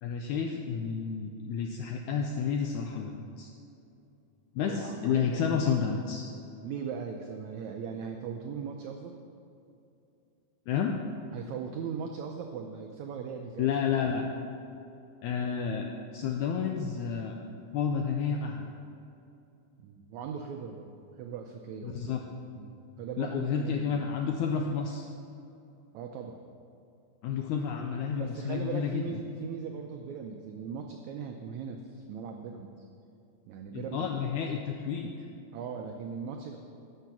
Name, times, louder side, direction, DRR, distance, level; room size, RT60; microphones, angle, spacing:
voice 1, 0.0-3.5 4.6-6.3 10.7-11.0 13.6-14.3 15.2-17.4 17.7-18.7 21.8-22.2 23.2-25.1 27.2-29.2 33.7-35.1, left 6 dB, 90° left, 3 dB, 1.7 m, -30 dB
voice 2, 4.6-5.7 6.6-9.2 11.3-14.0 19.8-22.0 22.6-24.1 25.9-26.4 27.8-32.8 33.5-34.1 35.5-36.6, right 6 dB, 90° right, 4 dB, 1.6 m, -39 dB
11.5 x 6.6 x 6.0 m, 2.6 s
omnidirectional pair, 4.0 m